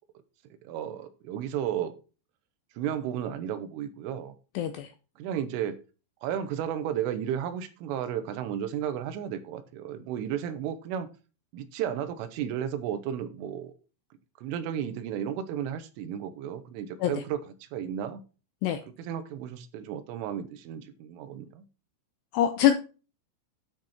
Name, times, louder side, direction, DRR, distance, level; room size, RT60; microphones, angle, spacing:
voice 1, 0.7-1.9 2.8-4.4 5.2-5.8 6.2-11.1 11.5-13.8 14.4-17.4 17.7-18.2 19.0-21.7, right 9 dB, 85° right, 3.6 m, -33 dB
voice 2, 4.6-4.9 17.0-17.1 18.6-18.8 22.3-22.7, left 11 dB, 85° left, 2.4 m, -23 dB
10.0 x 6.2 x 4.3 m
omnidirectional pair, 5.6 m